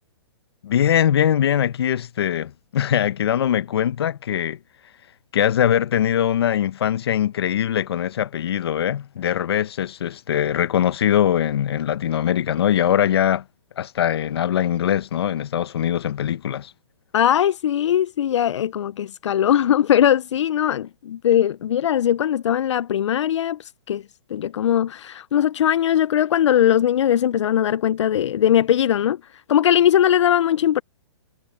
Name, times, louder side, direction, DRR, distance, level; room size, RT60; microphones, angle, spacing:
voice 1, 0.6-4.6 5.3-13.4 13.8-16.7, left 10 dB, 60° left, 0.9 m, -22 dB
voice 2, 17.1-24.0 24.3-30.8, left 10 dB, 85° left, 0.4 m, -20 dB
hypercardioid pair, 170°, 15 cm